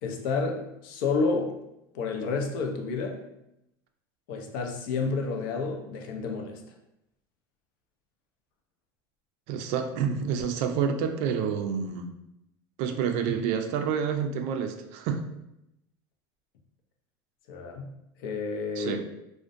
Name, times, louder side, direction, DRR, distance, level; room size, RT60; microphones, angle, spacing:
voice 1, 0.0-1.5 1.9-3.2 4.3-6.6 17.5-17.9 18.2-19.1, left 4 dB, 70° left, 3 dB, 0.5 m, -30 dB
voice 2, 9.5-12.1 12.8-15.3 18.8-19.1, right 7 dB, 60° right, 6 dB, 0.4 m, -28 dB
2.4 x 2.1 x 2.5 m, 0.84 s
supercardioid pair, 110°, 12 cm